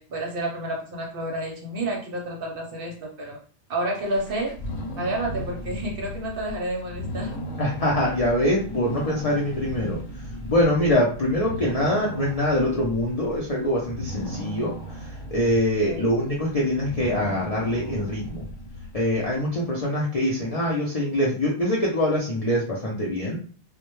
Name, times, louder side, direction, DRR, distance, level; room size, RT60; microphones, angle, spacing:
voice 1, 0.0-3.4 3.7-4.5 5.0-7.3 15.9-16.1, right 1 dB, 60° right, 0 dB, 0.7 m, -30 dB
sound 1, 3.9-19.4, equal, 85° left, 0.9 m, -36 dB
voice 2, 7.6-10.0 10.5-18.4 18.9-23.4, left 1 dB, 55° left, -4 dB, 0.4 m, -24 dB
2.1 x 2.1 x 3.0 m, 0.42 s
omnidirectional pair, 1.2 m